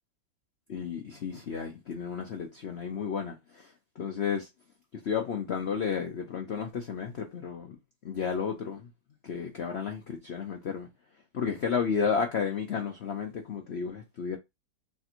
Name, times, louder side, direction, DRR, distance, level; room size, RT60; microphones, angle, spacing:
voice 1, 0.7-4.5 4.9-7.8 8.0-8.9 9.2-10.9 11.3-14.4, left 6 dB, 80° left, 0.5 m, -32 dB
3.4 x 2.5 x 4.2 m
omnidirectional pair, 2.0 m